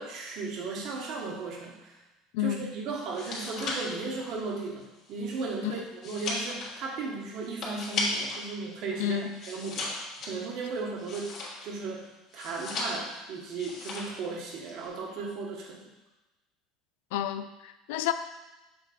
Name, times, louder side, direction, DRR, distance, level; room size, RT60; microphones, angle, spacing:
voice 1, 0.0-2.0 2.4-9.9 10.2-11.4 11.6-15.8, right 4 dB, 55° right, 0 dB, 1.3 m, -36 dB
voice 2, 2.3-2.7 5.6-5.8 9.0-9.4 17.1-18.1, left 11 dB, 85° left, 11 dB, 0.4 m, -30 dB
sound 1, 3.0-8.5 8.8-11.8 12.3-13.2 13.5-14.2 14.5-14.9, left 2 dB, 45° left, 1.6 m, -36 dB
6.8 x 3.4 x 4.3 m, 1.1 s
supercardioid pair, 125°, 0 cm